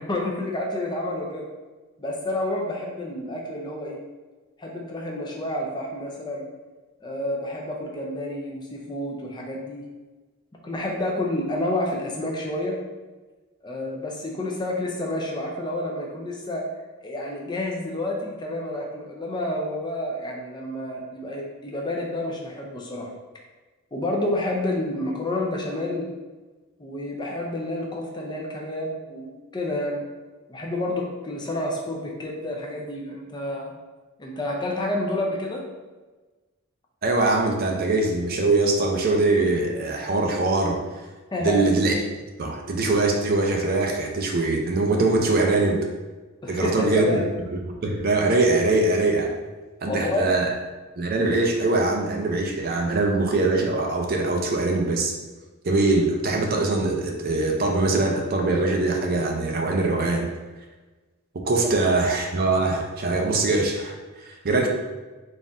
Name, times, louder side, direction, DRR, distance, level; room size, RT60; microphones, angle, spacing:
voice 1, 0.0-1.5 2.0-4.0 4.6-6.4 7.0-9.8 10.6-12.8 13.6-16.6 17.0-23.1 23.9-26.1 26.8-30.1 30.5-33.7 34.2-35.6 41.3-41.6 46.4-47.2 49.9-50.3, left 1 dB, 20° left, -1 dB, 0.5 m, -29 dB
voice 2, 37.0-40.8 41.4-41.9 42.4-45.8 46.5-47.2 47.5-49.3 49.8-50.5 51.0-55.2 55.6-60.3 61.4-64.7, right 2 dB, 45° right, 2 dB, 0.5 m, -22 dB
4.1 x 2.5 x 3.5 m, 1.2 s
head